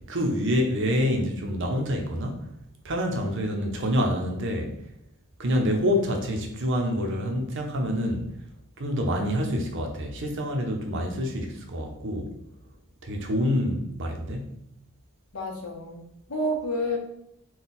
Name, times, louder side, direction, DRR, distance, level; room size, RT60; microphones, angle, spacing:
voice 1, 0.1-2.5 2.8-4.7 5.4-8.3 8.8-12.3 13.0-14.6, equal, 60° right, 0.7 m, -27 dB
voice 2, 15.3-17.0, equal, 75° left, 0.9 m, -30 dB
3.9 x 2.3 x 4.0 m
head